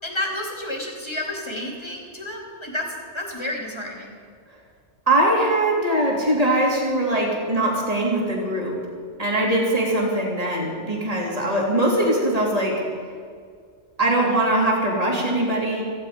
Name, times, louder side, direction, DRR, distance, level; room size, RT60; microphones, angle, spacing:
voice 1, 0.0-4.2, left 1 dB, 25° left, 0 dB, 3.0 m, -30 dB
voice 2, 5.1-8.7 9.2-12.8 14.0-15.8, right 1 dB, 30° right, -3 dB, 3.4 m, -21 dB
17.5 x 15.5 x 5.2 m, 2.1 s
omnidirectional pair, 1.2 m